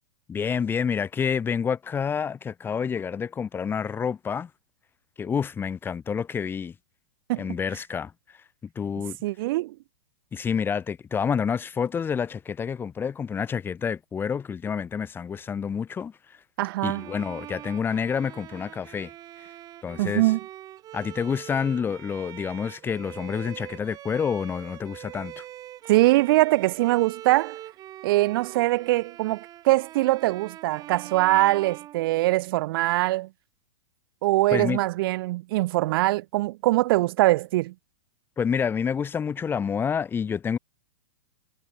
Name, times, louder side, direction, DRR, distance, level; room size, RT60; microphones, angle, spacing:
voice 1, 0.3-4.5 5.2-6.7 7.4-8.1 8.7-9.2 10.3-16.4 16.8-19.1 19.4-19.5 19.8-20.2 20.9-25.4 34.5-34.8 38.4-40.6, left 6 dB, 15° left, 1.5 m, -28 dB
voice 2, 9.2-9.8 16.6-17.1 20.0-20.4 25.9-27.6 28.0-33.3 34.2-37.7, right 18 dB, 55° right, 0.6 m, -22 dB
Bowed string instrument, 16.8-32.7, right 13 dB, 25° right, 1.3 m, -43 dB
hypercardioid pair, 140°, 15 cm